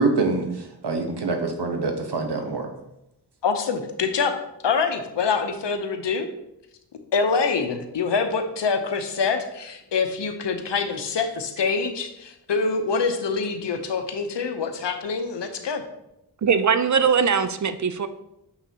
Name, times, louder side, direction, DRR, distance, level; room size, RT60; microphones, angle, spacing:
voice 1, 0.0-2.7, right 3 dB, 70° right, 4 dB, 1.1 m, -25 dB
voice 2, 3.4-4.4 4.6-6.3 7.1-15.8, left 5 dB, 80° left, 7 dB, 0.8 m, -25 dB
voice 3, 16.4-18.1, right 6 dB, 45° right, 11 dB, 0.5 m, -21 dB
6.4 x 5.9 x 2.8 m, 0.85 s
wide cardioid pair, 70°, 42 cm